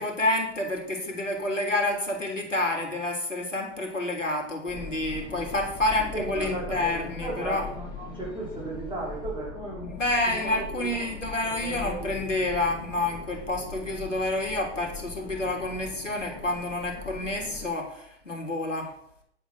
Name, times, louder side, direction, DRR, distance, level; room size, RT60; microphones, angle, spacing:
voice 1, 0.0-7.7 9.9-18.9, left 2 dB, 85° left, 2 dB, 3.2 m, -29 dB
sound 1, 4.7-17.6, left 3 dB, 40° left, 3.3 m, -41 dB
voice 2, 6.1-9.9 11.6-12.1, right 2 dB, 15° right, -4 dB, 5.4 m, -35 dB
10.5 x 7.8 x 6.6 m, 0.69 s
figure-of-eight pair, 100°, 36 cm